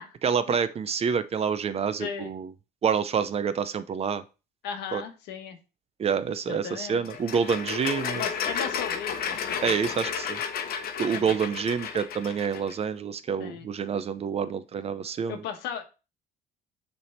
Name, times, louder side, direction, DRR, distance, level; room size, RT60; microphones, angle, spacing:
voice 1, 0.2-2.5 2.8-4.2 4.9-5.0 6.0-8.2 9.6-10.4 11.0-15.4, right 6 dB, 35° right, 13 dB, 0.6 m, -27 dB
voice 2, 2.0-2.3 4.6-5.6 6.5-7.1 8.1-10.0 11.1-11.3 13.4-13.7 15.3-15.8, left 8 dB, 90° left, 6 dB, 1.2 m, -37 dB
sound 1, 7.0-12.7, left 7 dB, 60° left, 0.9 m, -32 dB
6.7 x 3.4 x 4.4 m, 0.31 s
cardioid pair, 110°, 17 cm